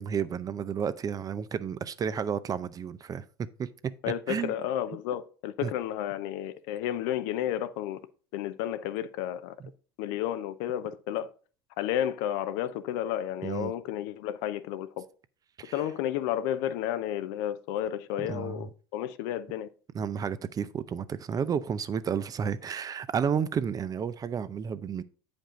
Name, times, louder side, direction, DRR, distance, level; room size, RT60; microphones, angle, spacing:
voice 1, 0.0-3.7 4.3-4.5 5.6-5.7 13.4-13.7 15.6-15.7 18.3-18.7 19.9-25.0, right 7 dB, 30° right, 0.5 m, -31 dB
voice 2, 4.0-8.1 8.3-9.6 10.0-11.3 11.8-15.0 15.7-19.7, left 11 dB, 65° left, 0.7 m, -32 dB
8.8 x 5.2 x 3.8 m
hypercardioid pair, 80°, 12 cm